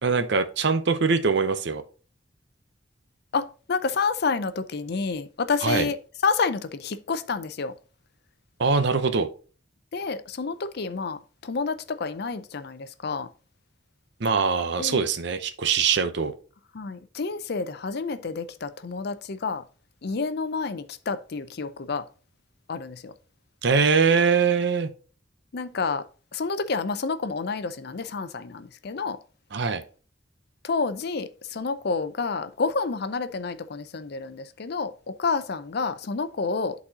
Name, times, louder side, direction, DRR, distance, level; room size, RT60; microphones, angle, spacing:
voice 1, 0.0-1.8 5.6-5.9 8.6-9.3 14.2-16.3 23.6-24.9 29.5-29.8, right 5 dB, 60° right, 0.7 m, -22 dB
voice 2, 3.3-6.0 6.2-7.7 9.9-13.3 14.8-15.0 16.7-19.6 20.0-22.0 22.7-23.1 25.5-26.0 26.3-29.2 30.6-36.7, left 4 dB, 55° left, 0.5 m, -29 dB
11.0 x 4.1 x 2.8 m
head